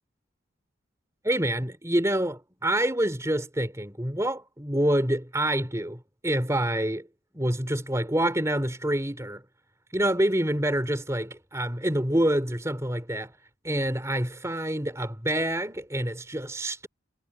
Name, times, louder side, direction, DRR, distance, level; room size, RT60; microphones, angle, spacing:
voice 1, 1.2-7.1 7.3-9.4 9.9-13.3 13.6-16.9, right 1 dB, 15° right, 3.3 m, -27 dB
head